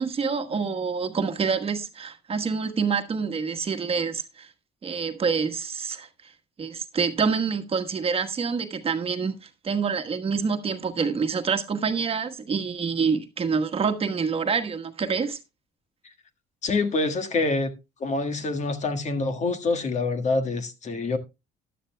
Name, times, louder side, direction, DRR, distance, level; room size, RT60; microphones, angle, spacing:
voice 1, 0.0-4.5 4.8-6.1 6.6-15.4, right 5 dB, 35° right, 1.3 m, -27 dB
voice 2, 16.6-17.7 18.0-21.2, left 3 dB, 45° left, 1.6 m, -26 dB
14.0 x 11.5 x 2.2 m
cardioid pair, 110°, 17 cm